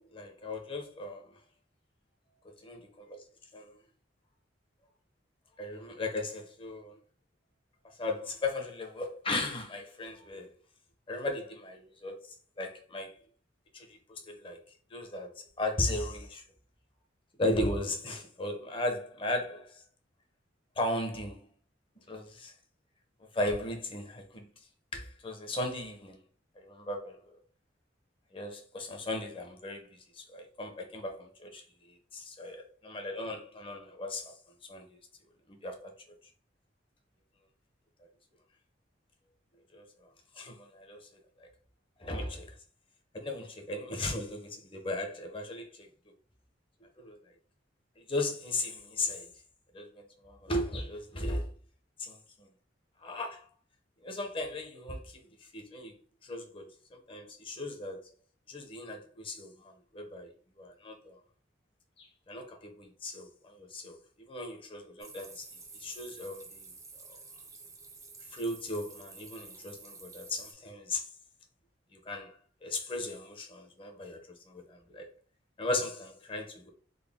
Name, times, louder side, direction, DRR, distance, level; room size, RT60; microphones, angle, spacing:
voice 1, 0.0-1.4 2.6-2.8 3.5-3.8 5.6-7.0 7.8-10.5 11.1-13.2 13.7-14.6 14.9-16.4 17.4-19.8 20.8-21.5 22.1-22.5 23.3-24.5 24.9-26.2 26.6-27.2 28.3-34.4 34.7-35.0 35.5-35.9 39.7-40.1 40.4-41.1 41.4-41.5 42.0-42.5 43.1-45.9 47.0-47.2 48.0-49.3 49.7-51.5 52.0-52.5 53.0-53.5 54.0-55.2 55.5-56.0 56.2-58.1 58.5-61.2 62.0-65.5 65.7-66.7 67.1-67.2 68.3-71.1 71.9-74.2 74.5-75.1 75.6-76.7, left 2 dB, 30° left, 0.8 m, -37 dB
sound 1, 65.0-70.5, right 4 dB, 20° right, 0.6 m, -50 dB
4.0 x 2.1 x 3.5 m
head